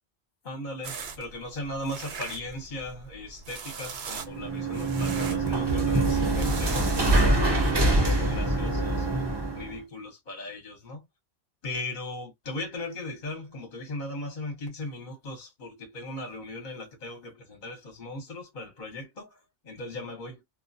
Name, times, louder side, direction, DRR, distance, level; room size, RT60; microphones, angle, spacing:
voice 1, 0.4-9.1 9.5-11.1 11.6-20.4, left 2 dB, 45° left, 0.9 m, -38 dB
sound 1, 0.8-7.7, right 5 dB, 65° right, 0.9 m, -41 dB
sound 2, 4.2-9.7, right 2 dB, 25° right, 0.6 m, -24 dB
2.2 x 2.2 x 2.6 m
omnidirectional pair, 1.2 m